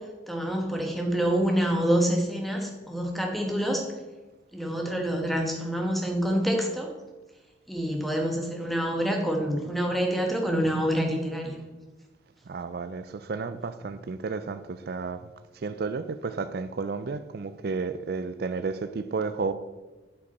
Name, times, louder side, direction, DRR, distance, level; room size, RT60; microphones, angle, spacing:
voice 1, 0.3-3.8 4.5-6.9 7.7-11.6, equal, ahead, 2 dB, 1.2 m, -27 dB
voice 2, 12.5-15.3 15.6-19.5, right 4 dB, 55° right, 11 dB, 0.4 m, -32 dB
8.2 x 7.7 x 4.2 m, 1.2 s
head